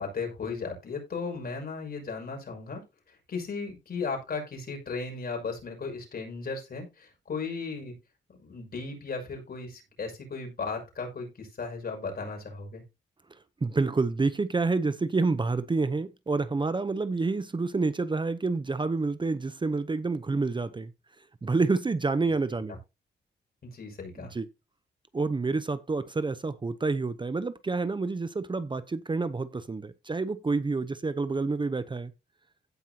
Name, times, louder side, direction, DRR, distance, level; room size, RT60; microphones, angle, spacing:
voice 1, 0.0-2.8 3.3-7.9 8.3-12.8 23.6-24.3, left 4 dB, 55° left, 6.2 m, -36 dB
voice 2, 13.6-20.9 21.4-22.8 24.2-24.5 25.1-32.1, right 3 dB, 25° right, 0.8 m, -28 dB
16.5 x 5.5 x 2.9 m
cardioid pair, 100°, 19 cm